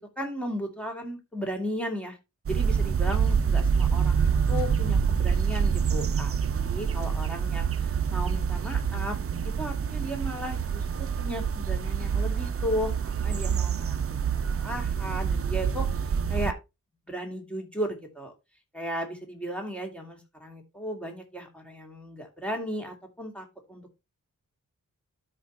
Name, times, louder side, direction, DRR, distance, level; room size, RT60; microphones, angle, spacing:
voice 1, 0.2-2.2 2.5-9.2 9.6-14.2 14.5-15.9 16.3-16.6 17.1-18.3 18.7-24.0, equal, 5° left, 2 dB, 2.6 m, -35 dB
sound 1, 2.5-16.5, right 6 dB, 45° right, 0.5 m, -26 dB
13.0 x 5.2 x 2.9 m, 0.23 s
wide cardioid pair, 130°, 33 cm